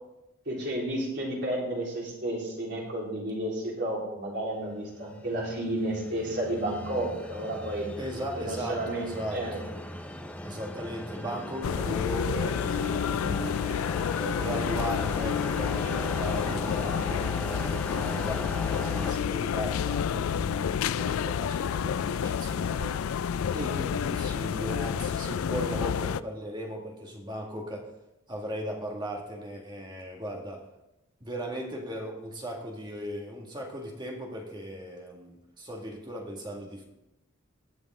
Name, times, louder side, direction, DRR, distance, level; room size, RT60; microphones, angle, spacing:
voice 1, 0.5-7.9 8.3-9.6, right 1 dB, 55° right, -4 dB, 3.8 m, -32 dB
sound 1, 5.0-19.1, left 1 dB, 5° left, 0.7 m, -38 dB
voice 2, 8.0-13.6 14.1-18.5 18.8-23.0 23.5-27.9 28.3-30.7 31.2-36.8, equal, 20° right, 0 dB, 1.9 m, -37 dB
sound 2, 11.6-26.2, left 7 dB, 75° left, 0.3 m, -29 dB
19.5 x 7.0 x 3.7 m, 0.92 s
head